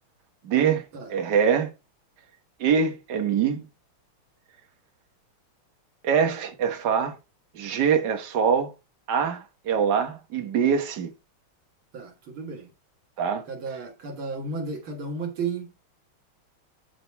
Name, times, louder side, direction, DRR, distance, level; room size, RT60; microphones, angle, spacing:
voice 1, 0.4-0.8 1.1-1.7 2.6-3.6 6.0-7.2 7.6-8.7 9.1-11.1 13.2-13.4, right 7 dB, 55° right, 1.8 m, -23 dB
voice 2, 11.9-12.7 13.5-15.7, right 4 dB, 75° right, 2.5 m, -33 dB
11.0 x 4.0 x 4.6 m
omnidirectional pair, 2.3 m